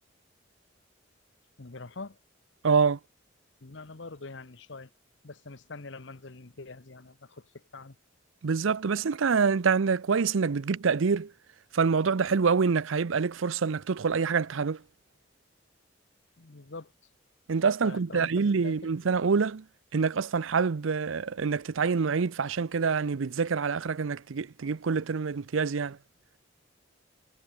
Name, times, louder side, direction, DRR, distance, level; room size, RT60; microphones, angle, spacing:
voice 1, 1.6-2.2 3.6-4.9 5.2-7.9 16.4-16.9 17.8-18.3 18.6-18.9, left 3 dB, 65° left, 1.1 m, -44 dB
voice 2, 2.6-3.0 8.4-11.3 11.7-14.8 17.5-19.6 19.9-26.0, right 5 dB, 75° right, 0.5 m, -26 dB
head